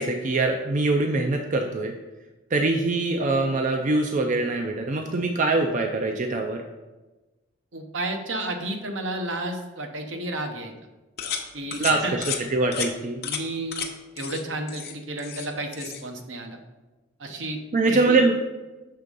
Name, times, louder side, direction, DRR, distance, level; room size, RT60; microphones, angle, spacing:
voice 1, 0.0-1.9 2.5-6.6 11.8-12.2 12.5-13.2 17.7-18.3, right 3 dB, 40° right, 3 dB, 0.5 m, -23 dB
voice 2, 7.7-10.7 11.5-12.5 13.2-13.9 14.2-16.6 17.2-17.6 17.9-18.2, right 1 dB, 70° right, 4 dB, 0.9 m, -32 dB
sound 1, 11.2-11.4 11.7-11.9 12.2-12.4 12.7-12.9 13.2-13.4 13.7-13.9 14.2-14.4 14.7-15.5 15.7-16.0, left 8 dB, 55° left, 0.7 m, -32 dB
6.7 x 3.6 x 5.3 m, 1.1 s
head